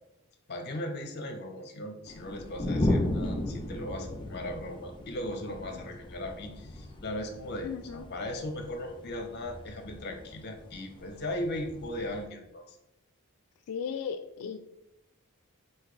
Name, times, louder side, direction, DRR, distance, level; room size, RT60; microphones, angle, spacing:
voice 1, 0.5-12.8, left 1 dB, 50° left, 4 dB, 0.8 m, -38 dB
sound 1, 2.1-12.3, left 1 dB, 20° left, 0.5 m, -35 dB
voice 2, 7.6-8.0 13.7-14.6, left 7 dB, 90° left, 8 dB, 0.3 m, -36 dB
5.7 x 2.7 x 3.2 m, 0.86 s
head